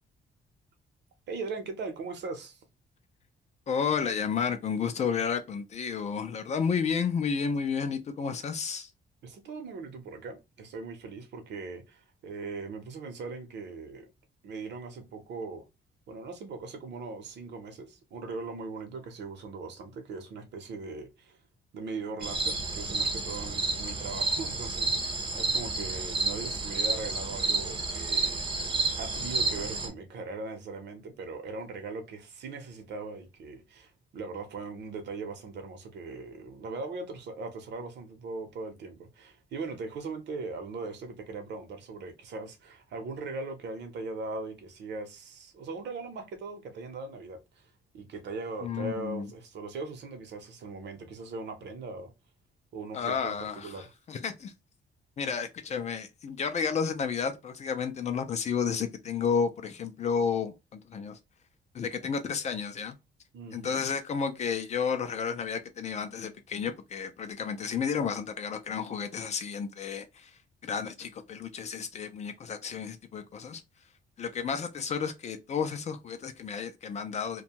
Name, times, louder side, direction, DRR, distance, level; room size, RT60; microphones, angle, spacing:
voice 1, 1.3-2.6 9.2-14.1 14.4-15.6 16.1-21.4 21.7-28.7 29.0-47.7 47.9-52.1 52.7-53.4 53.6-53.9 63.3-63.8, right 3 dB, 65° right, 0.8 m, -40 dB
voice 2, 3.7-8.9 48.6-49.3 52.9-54.5 55.2-61.2 61.7-63.0 63.5-73.6 74.2-77.4, left 6 dB, 35° left, 0.4 m, -32 dB
sound 1, 22.2-29.9, right 3 dB, 25° right, 0.5 m, -30 dB
2.6 x 2.2 x 2.8 m
cardioid pair, 170°, 19 cm